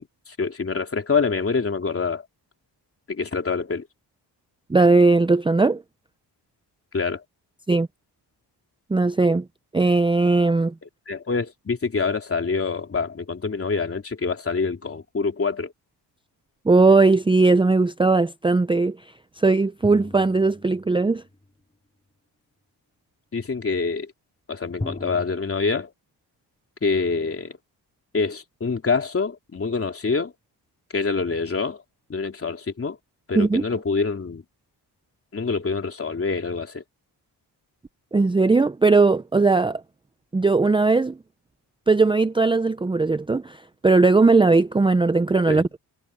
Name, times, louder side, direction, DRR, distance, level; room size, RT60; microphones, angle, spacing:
voice 1, 0.0-2.2 3.1-3.9 6.9-7.2 11.1-15.7 23.3-24.1 24.5-25.9 26.8-27.6 28.1-30.3 30.9-31.8 32.1-33.0 33.3-34.4 35.3-36.8 45.5-45.6, left 4 dB, 35° left, 3.1 m, -26 dB
voice 2, 4.7-5.8 7.7-7.9 8.9-9.5 9.7-10.7 16.7-19.0 19.4-21.2 33.3-33.6 38.1-39.8 40.3-41.2 41.9-45.8, right 3 dB, 10° right, 0.6 m, -18 dB
sound 1, 19.8-21.5 24.8-25.4, left 2 dB, 15° left, 4.4 m, -37 dB
cardioid pair, 95°, 41 cm